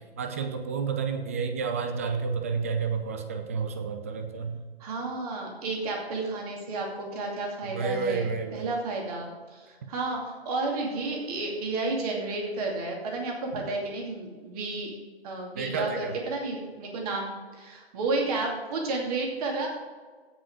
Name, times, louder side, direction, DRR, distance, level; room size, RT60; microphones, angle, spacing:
voice 1, 0.2-4.6 7.6-8.7 15.6-16.1, right 5 dB, 15° right, 7 dB, 0.4 m, -30 dB
voice 2, 4.8-14.9 15.2-19.7, right 3 dB, 35° right, 0 dB, 2.6 m, -32 dB
16.0 x 5.3 x 5.0 m, 1.4 s
figure-of-eight pair, 135°, 32 cm